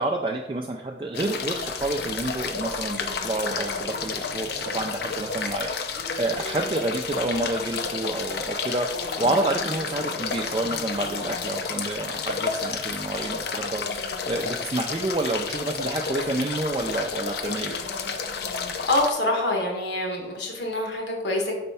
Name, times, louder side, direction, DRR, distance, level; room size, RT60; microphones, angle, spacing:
voice 1, 0.0-3.0 3.2-5.7 6.2-13.8 14.3-17.8, right 2 dB, 25° right, 2 dB, 0.3 m, -29 dB
sound 1, 1.1-19.1, left 5 dB, 60° left, 0.5 m, -31 dB
voice 2, 18.9-21.6, left 1 dB, 75° left, 0 dB, 1.4 m, -25 dB
4.5 x 4.2 x 5.5 m, 1.0 s
head